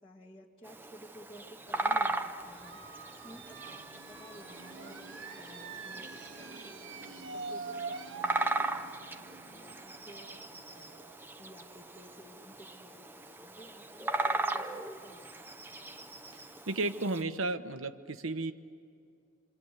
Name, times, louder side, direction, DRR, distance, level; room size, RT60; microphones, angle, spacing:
voice 1, 0.0-15.3, equal, 25° left, -6 dB, 1.8 m, -55 dB
Bird vocalization bird call bird song, 0.6-17.2, right 2 dB, 10° right, 0.8 m, -38 dB
sound 1, 2.4-11.9, right 4 dB, 65° right, 1.4 m, -45 dB
voice 2, 16.7-18.5, right 2 dB, 90° right, 9 dB, 1.1 m, -33 dB
27.0 x 26.5 x 8.3 m, 2.4 s
head